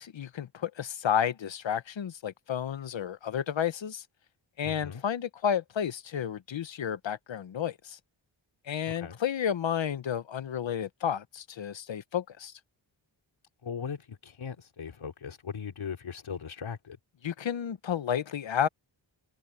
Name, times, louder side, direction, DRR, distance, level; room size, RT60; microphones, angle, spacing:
voice 1, 0.0-4.0 4.6-8.0 8.6-12.5 17.2-18.7, left 8 dB, 70° left, 1.0 m, -31 dB
voice 2, 4.6-5.0 8.9-9.2 13.6-17.0, left 6 dB, 90° left, 3.1 m, -39 dB
wide cardioid pair, 90°, 47 cm